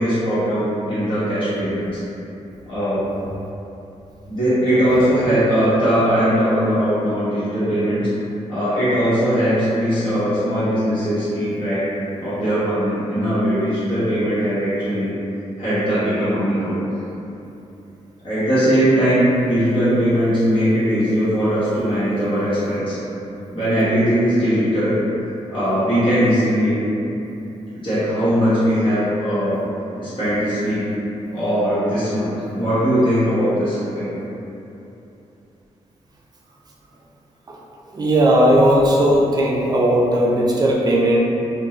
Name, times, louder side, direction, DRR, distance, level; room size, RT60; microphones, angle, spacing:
voice 1, 0.0-2.0 2.7-3.0 4.3-8.1 8.5-11.9 12.2-15.1 15.6-16.8 18.2-23.0 23.5-25.0 25.5-26.7 27.8-29.6 30.0-30.9 31.3-34.1, equal, 40° left, -14 dB, 1.1 m, -20 dB
voice 2, 37.9-41.2, right 1 dB, 30° right, -3 dB, 0.4 m, -16 dB
2.5 x 2.1 x 3.0 m, 2.9 s
wide cardioid pair, 120°, 12 cm